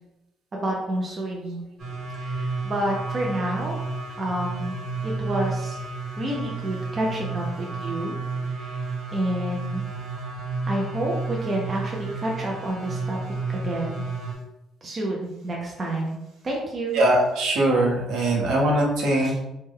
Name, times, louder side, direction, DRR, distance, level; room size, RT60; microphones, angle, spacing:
voice 1, 0.5-1.6 2.2-3.8 4.2-4.7 5.0-5.8 6.2-8.2 8.5-8.9 9.1-9.8 10.7-14.0 14.8-16.2 16.4-17.0 19.2-19.4, right 1 dB, 25° right, -2 dB, 0.5 m, -29 dB
sound 1, 1.8-14.3, right 3 dB, 45° right, 1.0 m, -31 dB
voice 2, 16.9-19.4, right 1 dB, 70° right, -2 dB, 0.9 m, -21 dB
3.2 x 2.1 x 3.4 m, 0.91 s
cardioid pair, 165°, 0 cm